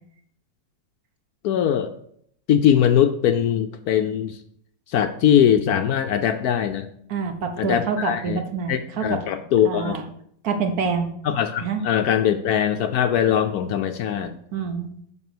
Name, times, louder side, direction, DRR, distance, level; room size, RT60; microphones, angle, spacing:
voice 1, 1.4-1.9 2.5-4.4 4.9-6.9 7.6-8.4 8.7-10.0 11.2-14.4, left 9 dB, 70° left, 8 dB, 1.0 m, -21 dB
voice 2, 7.1-9.2 9.6-10.0 10.4-11.1 11.6-11.8 14.5-14.9, right 5 dB, 60° right, 7 dB, 1.3 m, -26 dB
7.5 x 5.9 x 6.1 m, 0.69 s
omnidirectional pair, 1.9 m